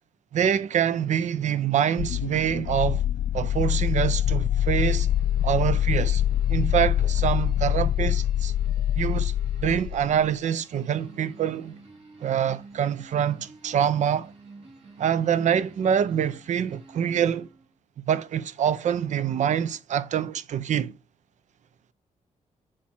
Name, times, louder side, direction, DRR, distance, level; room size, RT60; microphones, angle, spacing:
voice 1, 0.3-3.0 3.3-5.1 5.4-6.2 6.5-8.5 9.0-11.8 12.2-14.3 15.0-17.5 18.0-21.0, right 9 dB, 70° right, 0.5 m, -25 dB
sound 1, 2.0-10.2, left 11 dB, 80° left, 0.4 m, -24 dB
sound 2, 4.6-17.7, right 3 dB, 50° right, 2.9 m, -51 dB
7.3 x 3.2 x 4.4 m
cardioid pair, 105°, 13 cm